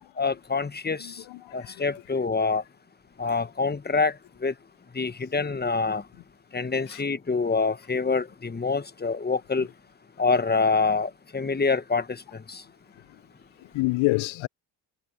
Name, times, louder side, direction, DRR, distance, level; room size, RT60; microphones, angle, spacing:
voice 1, 0.2-1.2 1.5-2.6 3.2-4.1 4.4-4.5 4.9-6.0 6.5-9.7 10.2-12.2 12.5-12.6, left 4 dB, 20° left, 1.3 m, -26 dB
voice 2, 1.0-1.9 6.9-7.0 9.6-9.7 13.6-14.5, left 22 dB, 65° left, 0.7 m, -28 dB
supercardioid pair, 60°, 49 cm